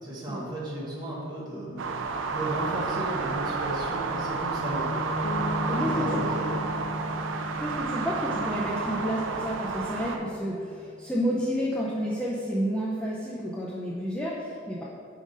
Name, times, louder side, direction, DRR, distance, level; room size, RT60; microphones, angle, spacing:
voice 1, 0.0-1.9 2.3-4.9 5.6-6.5, right 1 dB, 20° right, -7 dB, 1.4 m, -34 dB
sound 1, 1.8-10.2, right 4 dB, 70° right, 0.4 m, -31 dB
Piano, 4.8-11.4, left 1 dB, 30° left, 0.9 m, -37 dB
Bass guitar, 5.2-9.0, left 2 dB, 90° left, 0.4 m, -40 dB
voice 2, 5.7-6.2 7.6-14.8, equal, 5° left, -6 dB, 0.4 m, -30 dB
5.0 x 3.8 x 5.2 m, 2.5 s
head